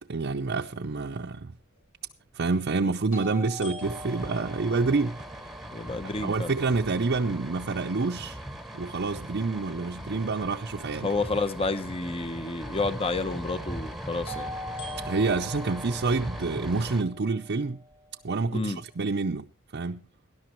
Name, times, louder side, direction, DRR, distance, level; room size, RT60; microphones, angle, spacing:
voice 1, 0.0-1.5 2.3-5.2 6.2-8.4 8.7-11.1 15.1-17.8 18.2-19.4 19.7-20.0, right 3 dB, 55° right, 0.6 m, -28 dB
sound 1, 1.2-1.3 3.1-7.0 14.3-18.3, equal, 80° left, 7.2 m, -42 dB
sound 2, 3.8-17.0, right 1 dB, ahead, 1.0 m, -40 dB
voice 2, 5.7-6.5 11.0-14.5 18.5-18.8, left 3 dB, 30° left, 0.8 m, -30 dB
19.0 x 11.0 x 3.1 m
head